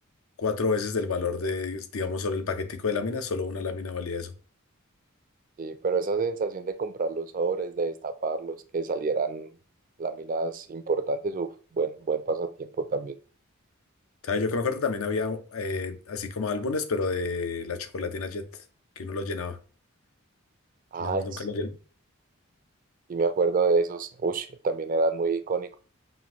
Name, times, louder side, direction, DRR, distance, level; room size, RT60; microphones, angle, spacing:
voice 1, 0.4-4.3 14.2-18.5 19.0-19.6 21.0-21.7, left 4 dB, 85° left, 0.6 m, -29 dB
voice 2, 5.6-9.5 10.0-11.5 11.7-13.2 20.9-21.5 23.1-25.8, right 4 dB, 40° right, 0.4 m, -28 dB
5.5 x 2.6 x 2.9 m
head